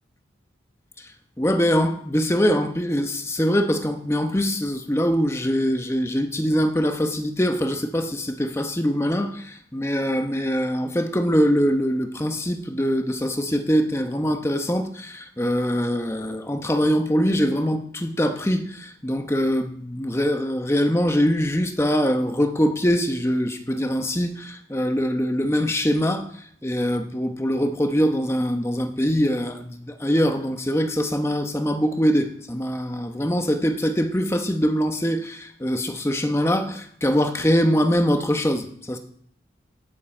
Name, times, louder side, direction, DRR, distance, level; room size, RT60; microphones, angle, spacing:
voice 1, 1.4-39.0, equal, 15° left, 6 dB, 0.9 m, -23 dB
18.0 x 7.3 x 4.4 m, 0.63 s
head